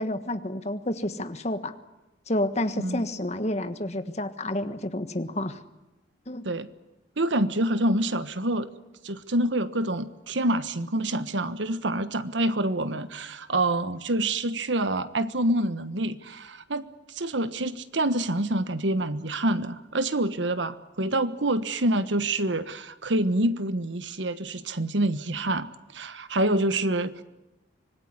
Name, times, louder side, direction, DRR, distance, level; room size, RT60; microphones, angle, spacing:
voice 1, 0.0-1.7 2.3-5.6 6.3-6.5, left 1 dB, 35° left, 10 dB, 1.4 m, -29 dB
voice 2, 7.2-8.7 9.0-27.2, right 1 dB, 80° right, 13 dB, 1.3 m, -27 dB
25.5 x 19.0 x 9.7 m, 1.0 s
head